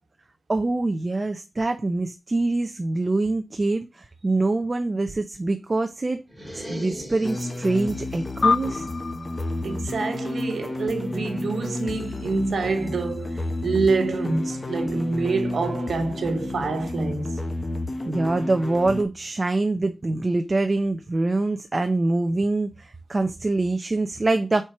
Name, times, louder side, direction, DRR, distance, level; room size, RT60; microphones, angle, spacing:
voice 1, 0.5-6.2 6.5-8.9 18.1-24.6, right 2 dB, 30° right, 0.6 m, -24 dB
sound 1, 6.3-7.9, right 1 dB, 5° right, 2.3 m, -38 dB
sound 2, 7.2-19.0, left 2 dB, 30° left, 0.9 m, -31 dB
sound 3, 8.4-11.2, left 5 dB, 65° left, 0.3 m, -28 dB
voice 2, 9.6-17.3, right 3 dB, 80° right, 1.2 m, -26 dB
4.5 x 4.5 x 5.6 m
wide cardioid pair, 120°, 0 cm